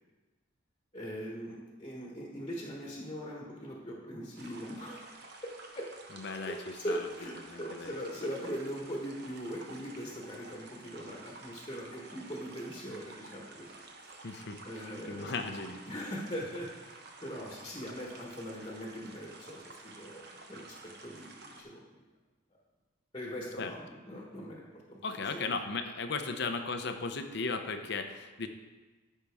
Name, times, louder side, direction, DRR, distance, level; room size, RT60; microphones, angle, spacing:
voice 1, 0.9-5.0 5.4-5.9 6.4-15.5 15.9-20.7 21.0-22.1 23.1-25.0, equal, 25° left, -2 dB, 1.3 m, -41 dB
sound 1, 4.4-21.6, right 3 dB, 55° right, 1.0 m, -51 dB
voice 2, 6.1-6.6 6.9-7.0 7.5-8.0 14.2-14.6 15.1-15.8 23.6-23.7 25.0-28.5, left 4 dB, 60° left, 7 dB, 0.7 m, -36 dB
13.5 x 5.5 x 3.5 m, 1.3 s
head